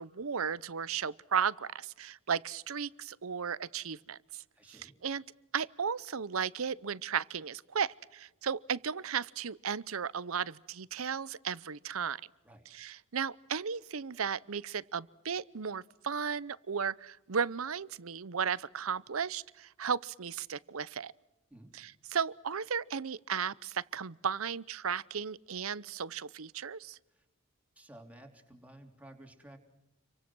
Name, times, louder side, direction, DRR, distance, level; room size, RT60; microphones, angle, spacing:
voice 1, 0.0-4.4 4.8-5.2 5.5-12.2 12.7-21.1 21.7-27.0, right 7 dB, 90° right, 0.8 m, -35 dB
voice 2, 4.5-5.0 12.4-12.7 21.5-21.7 27.1-27.2 27.7-29.6, right 1 dB, 5° right, 3.4 m, -54 dB
29.0 x 24.0 x 6.2 m
head